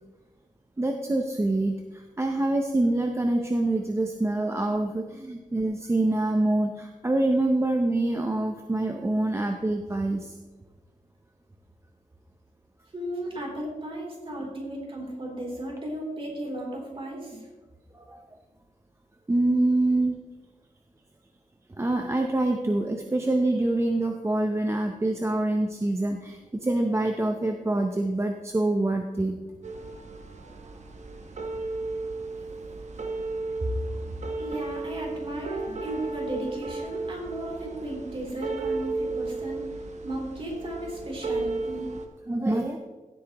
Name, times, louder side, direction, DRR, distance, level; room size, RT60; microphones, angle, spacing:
voice 1, 0.8-10.3 14.4-14.5 17.9-18.2 19.3-20.2 21.8-29.4 42.3-42.8, right 2 dB, 20° right, 3 dB, 0.6 m, -25 dB
voice 2, 12.9-17.5 33.6-33.7 34.4-39.6 40.0-41.9, right 1 dB, 40° right, -2 dB, 3.2 m, -35 dB
sound 1, 29.6-42.1, right 3 dB, 55° right, 1.1 m, -34 dB
16.0 x 8.5 x 3.0 m, 1.2 s
wide cardioid pair, 160°, 14 cm